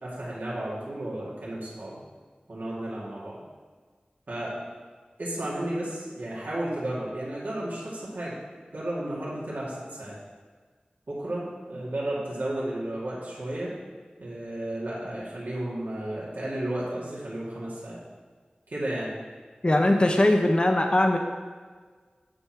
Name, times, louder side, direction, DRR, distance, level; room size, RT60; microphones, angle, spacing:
voice 1, 0.0-2.0 2.5-3.4 4.3-4.5 5.2-8.4 8.7-10.2 11.1-13.7 14.2-18.0 18.7-19.1, right 1 dB, 85° right, -7 dB, 2.2 m, -33 dB
voice 2, 19.6-21.2, left 1 dB, 35° left, 3 dB, 0.7 m, -20 dB
8.7 x 4.4 x 4.7 m, 1.5 s
wide cardioid pair, 45°, 3 cm